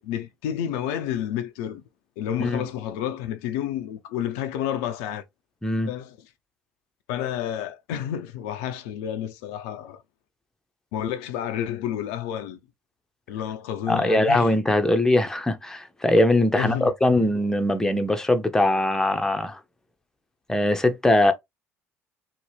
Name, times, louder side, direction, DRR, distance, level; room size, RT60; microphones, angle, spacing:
voice 1, 0.0-1.8 2.2-5.2 5.9-6.2 7.1-10.0 10.9-12.6 13.3-14.5 16.6-17.3, left 10 dB, 70° left, 0.4 m, -30 dB
voice 2, 13.9-19.6 20.5-21.3, left 1 dB, 5° left, 0.6 m, -21 dB
2.8 x 2.1 x 3.2 m
figure-of-eight pair, 55°, 7 cm